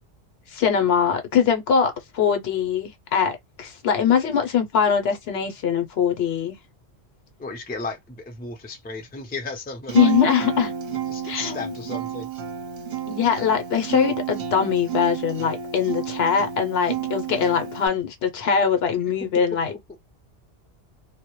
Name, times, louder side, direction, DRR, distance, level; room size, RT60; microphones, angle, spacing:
voice 1, 0.5-6.6 9.9-10.7 11.2-11.7 13.1-19.7, left 7 dB, 70° left, 0.8 m, -22 dB
voice 2, 7.4-10.1 11.1-12.3 19.7-20.0, left 3 dB, 15° left, 0.4 m, -34 dB
Acoustic guitar, 9.9-17.9, right 9 dB, 55° right, 0.7 m, -30 dB
2.1 x 2.0 x 2.9 m
omnidirectional pair, 1.2 m